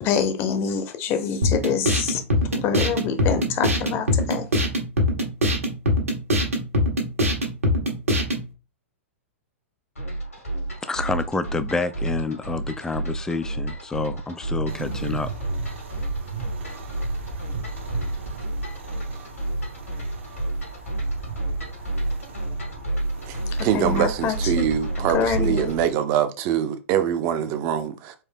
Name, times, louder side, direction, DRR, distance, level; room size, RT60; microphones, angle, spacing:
voice 1, 0.0-2.2 2.5-4.5 23.5-24.7 25.0-25.7, left 7 dB, 35° left, 0.8 m, -26 dB
sound 1, 1.4-8.4, left 1 dB, 80° right, 1.4 m, -23 dB
sound 2, 10.0-25.8, right 2 dB, 80° left, 2.1 m, -30 dB
voice 2, 10.8-15.3, left 3 dB, 10° left, 0.4 m, -28 dB
sound 3, 14.7-25.9, right 3 dB, 60° right, 0.9 m, -36 dB
voice 3, 23.3-28.1, right 9 dB, 35° right, 0.6 m, -24 dB
4.5 x 2.7 x 3.5 m
figure-of-eight pair, 105°, 7 cm